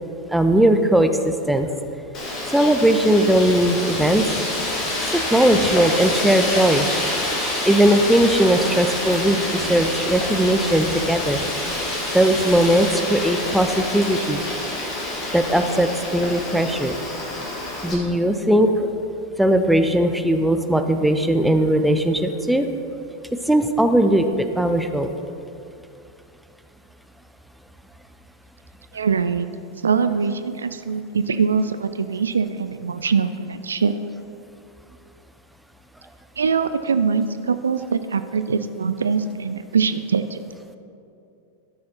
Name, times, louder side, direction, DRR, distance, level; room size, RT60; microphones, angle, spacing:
voice 1, 0.3-1.7 2.5-4.3 5.1-6.9 7.6-11.4 12.1-14.4 15.3-16.9 17.8-18.9 19.4-22.7 23.5-24.3 24.6-25.1, right 1 dB, 5° right, 7 dB, 0.6 m, -19 dB
Wind, 2.1-17.9, left 1 dB, 35° left, 1.8 m, -27 dB
voice 2, 28.9-29.5 29.8-33.9 36.4-40.4, right 5 dB, 70° right, 11 dB, 0.3 m, -23 dB
12.0 x 6.3 x 4.3 m, 2.6 s
figure-of-eight pair, 90°, 0 cm